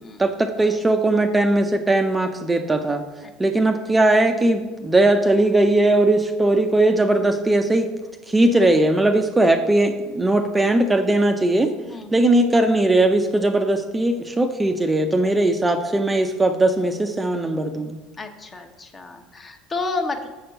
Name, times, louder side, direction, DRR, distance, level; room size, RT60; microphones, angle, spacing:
voice 1, 0.2-3.0 3.4-7.9 8.3-11.7 12.1-18.0, right 2 dB, 15° right, 6 dB, 0.6 m, -19 dB
voice 2, 11.7-12.2 15.2-15.4 18.2-20.3, left 3 dB, 25° left, 5 dB, 1.0 m, -31 dB
6.9 x 4.4 x 6.4 m, 1.2 s
figure-of-eight pair, 65°, 0 cm